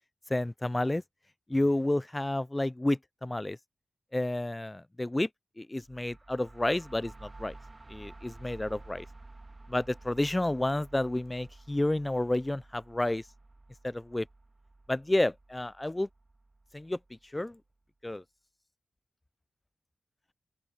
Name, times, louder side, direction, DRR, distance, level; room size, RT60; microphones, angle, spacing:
voice 1, 0.3-1.0 1.5-3.6 4.1-5.3 5.6-7.5 7.9-9.1 9.7-13.2 13.8-14.3 14.9-16.1 16.7-17.0 17.3-17.6 18.0-18.2, left 1 dB, 20° left, 0.3 m, -30 dB
sound 1, 5.8-17.5, right 2 dB, 30° right, 1.8 m, -52 dB
open air
cardioid pair, 70°, 0 cm